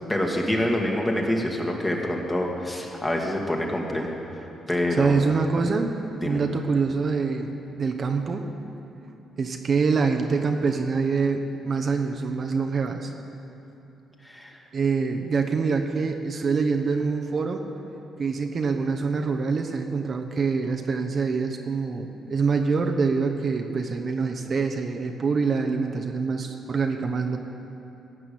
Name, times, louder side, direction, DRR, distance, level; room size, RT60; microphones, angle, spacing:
voice 1, 0.1-5.3 6.2-6.4 14.2-14.6, left 1 dB, 15° left, 0 dB, 1.9 m, -26 dB
voice 2, 5.0-7.5 7.8-8.5 9.4-13.1 14.7-17.6 18.2-27.4, right 4 dB, 45° right, 3 dB, 0.9 m, -25 dB
15.5 x 6.1 x 8.6 m, 3.0 s
cardioid pair, 90°, 0 cm